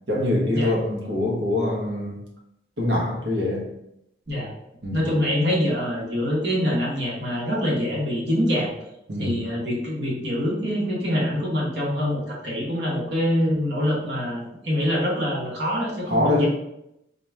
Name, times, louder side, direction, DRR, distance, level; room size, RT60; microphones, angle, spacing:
voice 1, 0.1-2.2 2.8-3.7 4.8-5.1 9.1-9.4 16.1-16.5, left 1 dB, 80° right, -2 dB, 1.3 m, -24 dB
voice 2, 4.9-8.7 9.2-16.5, equal, 65° right, -3 dB, 1.3 m, -25 dB
4.0 x 3.0 x 3.5 m, 0.82 s
head